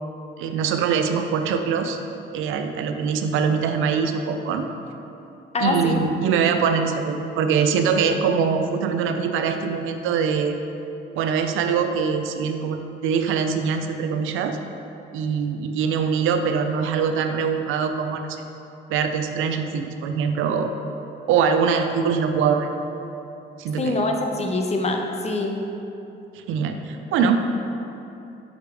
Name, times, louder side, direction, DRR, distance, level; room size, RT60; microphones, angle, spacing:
voice 1, 0.4-2.0 2.3-4.7 5.6-10.6 11.2-14.6 15.1-18.4 18.9-20.7 21.3-22.7 23.6-24.0 26.4-27.4, right 6 dB, 90° right, 6 dB, 0.5 m, -23 dB
voice 2, 5.5-6.0 23.8-25.6, left 2 dB, 35° left, 3 dB, 0.7 m, -24 dB
5.8 x 5.0 x 3.4 m, 2.8 s
cardioid pair, 90°, 20 cm